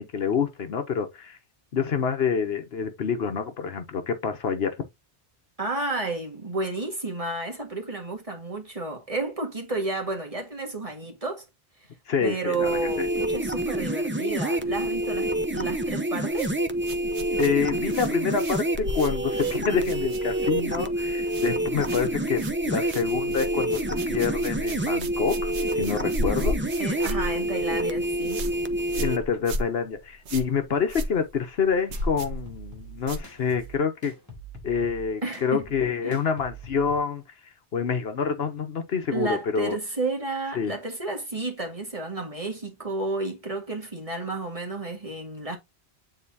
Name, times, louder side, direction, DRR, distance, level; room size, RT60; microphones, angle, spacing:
voice 1, 0.0-1.4 1.7-4.9 12.1-13.1 17.4-26.6 28.9-34.1 34.6-37.2 37.7-39.8 40.5-40.7, left 6 dB, 65° left, 1.1 m, -27 dB
voice 2, 5.6-11.5 12.2-16.6 26.8-28.4 35.2-35.6 36.0-36.2 39.1-45.6, right 3 dB, 30° right, 1.9 m, -31 dB
sound 1, 12.5-29.2, right 1 dB, 15° right, 0.6 m, -27 dB
sound 2, 16.3-20.7 20.9-21.5 21.8-33.8, equal, 90° right, 1.3 m, -35 dB
sound 3, 31.9-37.0, right 3 dB, 15° left, 3.4 m, -44 dB
8.9 x 3.9 x 2.8 m
omnidirectional pair, 1.1 m